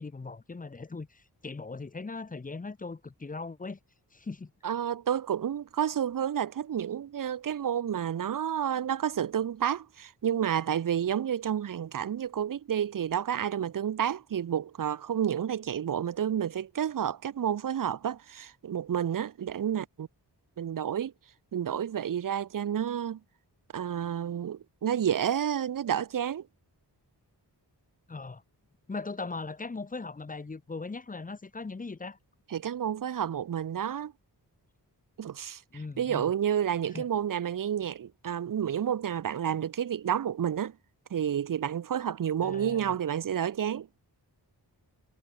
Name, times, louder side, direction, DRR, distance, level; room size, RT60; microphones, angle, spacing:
voice 1, 0.0-3.8 4.1-4.5 28.1-28.4 28.9-32.2 35.7-36.3 36.9-37.1 42.4-43.0, left 3 dB, 20° left, 0.6 m, -39 dB
voice 2, 4.6-20.1 20.6-21.1 21.5-23.2 23.7-26.5 32.5-34.1 35.2-35.6 36.0-40.8 41.1-43.9, right 9 dB, 50° right, 0.5 m, -30 dB
wide cardioid pair, 90°, 41 cm